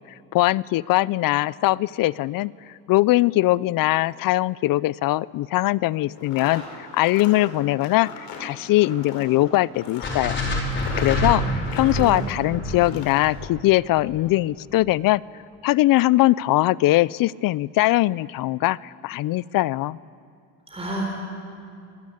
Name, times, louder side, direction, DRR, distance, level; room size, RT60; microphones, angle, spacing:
voice 1, 0.3-2.5 2.9-8.1 8.4-10.4 11.0-15.2 15.6-20.0, left 17 dB, 60° left, 22 dB, 0.5 m, -21 dB
sound 1, 6.1-12.3 12.7-13.3, left 5 dB, 85° left, 5.1 m, -39 dB
sound 2, 10.0-14.2, left 1 dB, 30° left, 4.4 m, -27 dB
voice 2, 12.0-12.3 20.7-21.1, right 2 dB, 15° right, -1 dB, 4.2 m, -31 dB
26.0 x 19.5 x 8.5 m, 2.3 s
cardioid pair, 125°, 38 cm